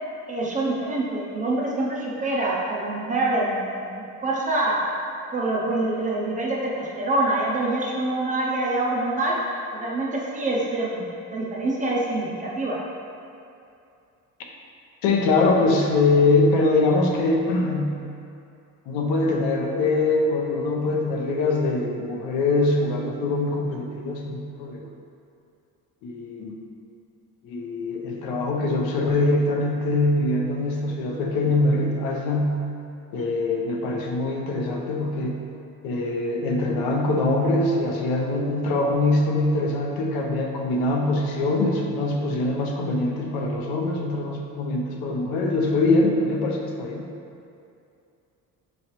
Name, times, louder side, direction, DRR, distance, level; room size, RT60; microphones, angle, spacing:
voice 1, 0.3-4.8 5.3-9.4 9.7-12.8, right 2 dB, 25° right, -4 dB, 0.4 m, -25 dB
voice 2, 15.0-18.0 18.9-24.8 26.0-26.6 27.4-32.6 33.1-35.4 35.8-47.1, left 2 dB, 90° left, 0 dB, 0.7 m, -23 dB
5.5 x 3.1 x 2.9 m, 2.6 s
cardioid pair, 175°, 35 cm